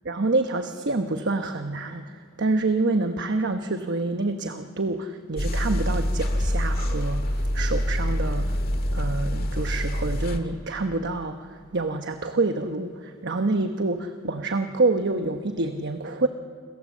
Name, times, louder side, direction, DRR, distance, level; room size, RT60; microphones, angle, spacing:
voice 1, 0.1-8.5 8.9-16.3, right 3 dB, 60° right, 7 dB, 1.1 m, -27 dB
sound 1, 5.4-10.4, equal, 45° left, 1.9 m, -26 dB
27.5 x 27.0 x 7.4 m, 2.2 s
head